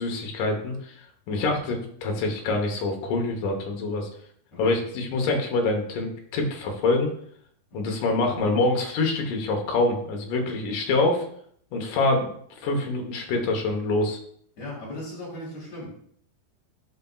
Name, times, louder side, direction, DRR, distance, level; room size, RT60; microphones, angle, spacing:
voice 1, 0.0-4.1 4.6-7.1 7.7-11.2 11.7-12.3 12.6-14.2, left 2 dB, 65° left, 2 dB, 2.3 m, -25 dB
voice 2, 4.5-4.8 14.6-15.9, left 1 dB, 45° left, -5 dB, 4.0 m, -38 dB
11.0 x 5.1 x 2.3 m, 0.64 s
omnidirectional pair, 4.7 m